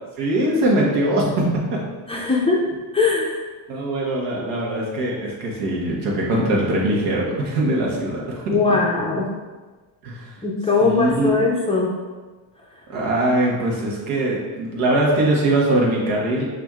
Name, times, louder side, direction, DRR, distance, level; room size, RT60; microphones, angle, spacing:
voice 1, 0.2-1.4 1.7-1.8 3.7-8.6 10.0-10.4 10.8-11.3 12.9-16.5, right 1 dB, 90° right, -3 dB, 1.2 m, -21 dB
voice 2, 2.1-2.7 2.9-3.4 8.5-9.3 10.4-12.0 12.7-12.8, left 4 dB, 15° left, -3 dB, 0.4 m, -20 dB
5.9 x 2.6 x 2.3 m, 1.3 s
cardioid pair, 115°, 48 cm